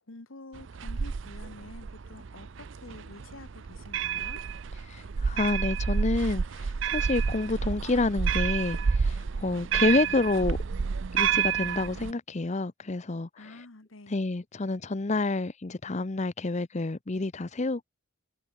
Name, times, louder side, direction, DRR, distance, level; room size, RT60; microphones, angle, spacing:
voice 1, 0.1-4.4 13.4-14.2, left 2 dB, 75° left, 1.5 m, -48 dB
sound 1, 0.5-12.1, right 6 dB, 65° right, 0.5 m, -30 dB
voice 2, 4.9-10.6 11.1-13.3 14.1-17.8, left 2 dB, 35° left, 0.7 m, -28 dB
head